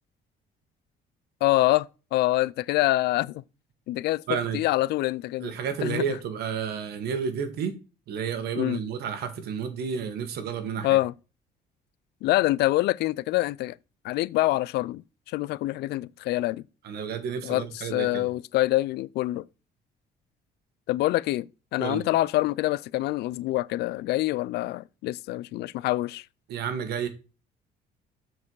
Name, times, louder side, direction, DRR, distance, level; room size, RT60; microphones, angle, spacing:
voice 1, 1.4-3.4 3.9-4.2 4.5-5.5 5.8-6.0 8.6-8.8 10.8-11.1 12.2-13.8 14.0-15.0 15.3-16.6 17.4-19.4 20.9-26.2, left 17 dB, 75° left, 0.4 m, -25 dB
voice 2, 4.3-4.6 5.4-7.7 8.1-11.0 16.8-18.3 21.8-22.0 26.5-27.1, right 7 dB, 70° right, 1.6 m, -31 dB
7.4 x 4.7 x 4.7 m
cardioid pair, 110°, 17 cm